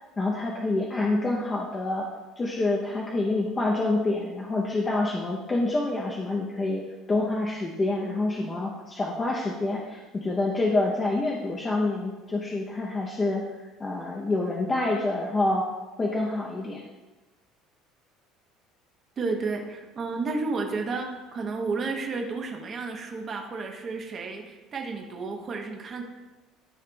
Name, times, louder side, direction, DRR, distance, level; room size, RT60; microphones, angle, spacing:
voice 1, 0.2-2.0 2.4-6.8 7.1-13.4 13.8-15.7 16.0-16.8, left 2 dB, 15° left, -3 dB, 0.7 m, -27 dB
voice 2, 19.2-26.0, right 3 dB, 25° right, 2 dB, 0.9 m, -32 dB
12.5 x 5.7 x 2.3 m, 1.2 s
cardioid pair, 170°, 0 cm